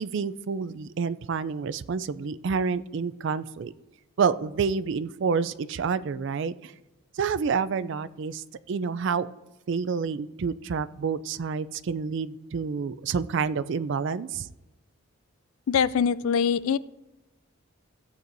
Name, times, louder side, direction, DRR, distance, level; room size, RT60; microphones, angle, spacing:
voice 1, 0.0-3.7 4.2-6.7 7.2-9.3 9.7-14.5, right 5 dB, 55° right, 15 dB, 0.4 m, -28 dB
voice 2, 15.7-16.8, left 7 dB, 75° left, 17 dB, 0.4 m, -23 dB
16.0 x 8.0 x 2.6 m, 1.0 s
head